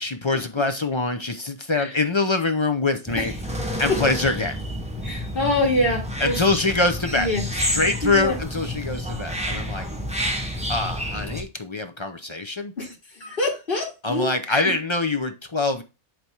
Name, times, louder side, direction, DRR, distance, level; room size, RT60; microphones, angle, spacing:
voice 1, 0.0-3.3 3.8-4.6 6.2-9.9 10.7-12.7 14.0-15.8, left 3 dB, 30° left, 7 dB, 0.6 m, -24 dB
sound 1, 3.1-11.4, equal, 5° right, 1.0 m, -29 dB
voice 2, 5.0-6.4 7.1-7.4 8.0-8.4 12.8-14.7, left 1 dB, 50° left, -5 dB, 2.2 m, -25 dB
8.6 x 3.5 x 4.5 m, 0.28 s
omnidirectional pair, 1.2 m